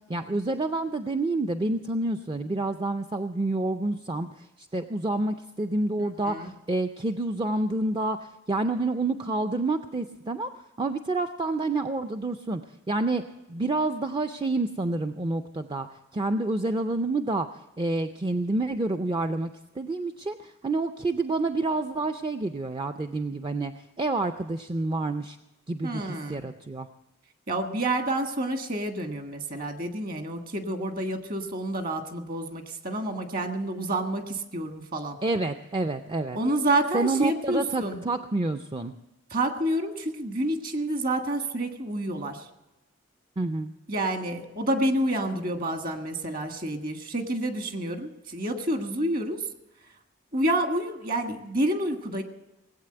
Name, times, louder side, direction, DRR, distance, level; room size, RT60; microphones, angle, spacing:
voice 1, 0.1-10.5 10.8-12.6 12.9-13.2 13.5-15.9 16.1-19.5 19.8-25.4 25.7-26.9 35.2-36.4 36.9-38.9 43.4-43.7, right 2 dB, 25° right, 6 dB, 0.4 m, -28 dB
voice 2, 6.0-6.5 25.8-26.4 27.5-35.2 36.3-38.0 39.3-42.5 43.9-49.4 50.3-52.2, right 1 dB, 45° right, 5 dB, 1.6 m, -29 dB
19.0 x 8.3 x 7.8 m, 0.99 s
head